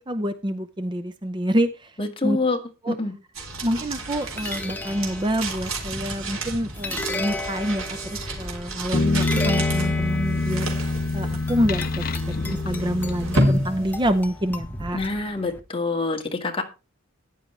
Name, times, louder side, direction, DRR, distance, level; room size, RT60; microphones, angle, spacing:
voice 1, 0.1-2.4 2.8-3.0 3.6-7.8 8.1-10.8 11.1-15.0, equal, 20° right, 11 dB, 0.6 m, -27 dB
voice 2, 2.0-2.6 2.9-3.1 14.9-16.6, left 3 dB, 25° left, 3 dB, 1.9 m, -26 dB
sound 1, 3.3-14.7, right 1 dB, 90° right, 3.7 m, -31 dB
sound 2, 3.5-15.6, left 1 dB, 10° left, 1.2 m, -34 dB
sound 3, 8.9-13.8, left 3 dB, 45° left, 0.6 m, -26 dB
14.0 x 10.5 x 3.3 m, 0.29 s
head